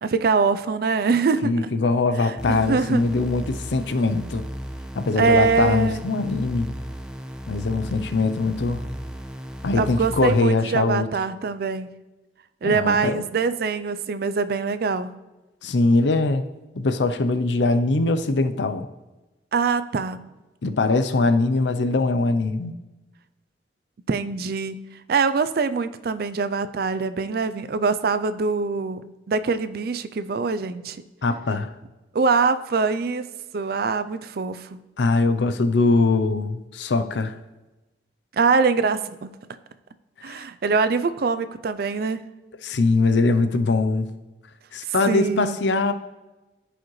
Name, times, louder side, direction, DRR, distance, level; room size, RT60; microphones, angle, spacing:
voice 1, 0.0-1.7 2.2-3.0 5.2-6.0 9.8-11.9 12.6-15.1 19.5-20.2 24.1-31.0 32.1-33.3 33.5-34.8 38.3-39.4 40.2-42.2 44.9-45.6, right 4 dB, 60° right, 12 dB, 0.4 m, -23 dB
voice 2, 1.4-4.4 5.0-6.7 7.5-8.9 9.6-11.1 12.6-13.2 15.6-16.4 16.8-18.9 20.6-22.8 31.2-31.7 35.0-37.3 40.2-40.4 42.6-44.1 44.7-45.9, left 3 dB, 80° left, 10 dB, 0.6 m, -22 dB
sound 1, 2.4-10.4, equal, 5° right, 0.8 m, -35 dB
14.5 x 5.0 x 3.1 m, 1.1 s
head